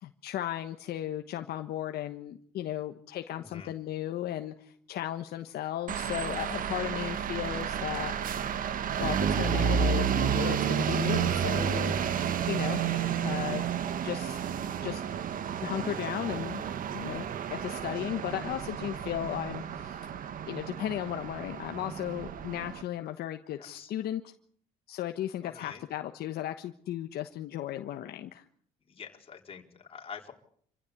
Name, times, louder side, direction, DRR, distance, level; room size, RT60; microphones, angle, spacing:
voice 1, 0.0-8.1 9.0-12.0 12.5-12.8 13.2-13.6 14.0-14.4 14.8-15.0 15.6-16.6 16.9-20.1 20.5-24.3 24.9-28.4, left 12 dB, 70° left, 7 dB, 1.3 m, -35 dB
voice 2, 3.4-3.7 12.9-13.1 23.6-23.9 25.4-25.8 28.9-30.3, left 6 dB, 35° left, 2 dB, 4.1 m, -46 dB
sound 1, 5.9-22.8, right 8 dB, 55° right, 1.6 m, -31 dB
27.0 x 16.0 x 8.6 m, 0.63 s
cardioid pair, 110°, 17 cm